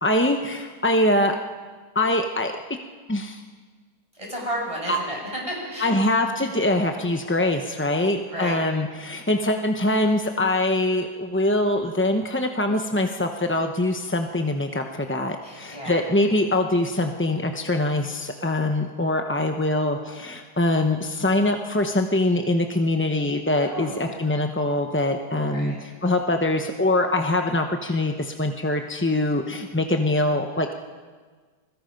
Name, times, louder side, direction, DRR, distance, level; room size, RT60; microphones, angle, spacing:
voice 1, 0.0-1.4 1.9-2.5 3.1-3.4 4.9-5.0 5.8-30.8, left 1 dB, 10° left, 4 dB, 0.5 m, -23 dB
voice 2, 4.1-6.1 6.4-6.5 8.0-8.6 15.4-16.0 23.6-24.2 25.5-25.8, equal, 20° right, -2 dB, 6.5 m, -33 dB
29.5 x 21.0 x 5.3 m, 1.5 s
omnidirectional pair, 1.9 m